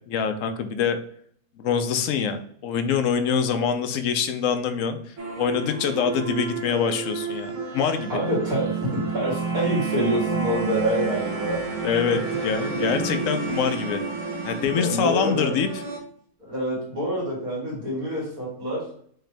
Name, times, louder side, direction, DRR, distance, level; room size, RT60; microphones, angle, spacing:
voice 1, 0.1-1.0 1.6-5.0 5.4-8.2 11.8-14.0 14.4-15.7, left 7 dB, 70° left, 9 dB, 0.9 m, -25 dB
sound 1, 5.2-16.0, right 4 dB, 60° right, 1.2 m, -30 dB
voice 2, 8.1-11.6 14.7-15.5 16.5-18.8, equal, 85° right, -6 dB, 2.8 m, -26 dB
5.8 x 2.7 x 3.3 m, 0.62 s
omnidirectional pair, 1.5 m